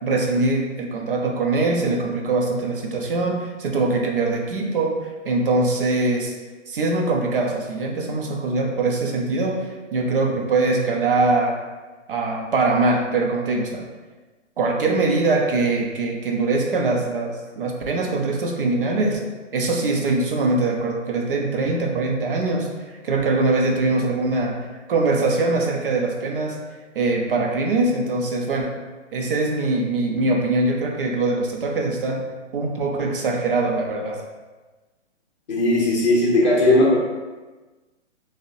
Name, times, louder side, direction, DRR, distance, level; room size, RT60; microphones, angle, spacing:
voice 1, 0.0-5.0 5.2-6.3 6.7-11.6 12.1-13.9 14.6-19.2 19.5-22.7 23.0-24.6 24.9-26.6 26.9-28.7 29.1-32.2 32.5-34.2, right 3 dB, 50° right, 0 dB, 0.6 m, -22 dB
voice 2, 35.5-37.0, left 1 dB, 35° left, -6 dB, 0.6 m, -17 dB
5.0 x 2.1 x 2.6 m, 1.3 s
hypercardioid pair, 165°, 37 cm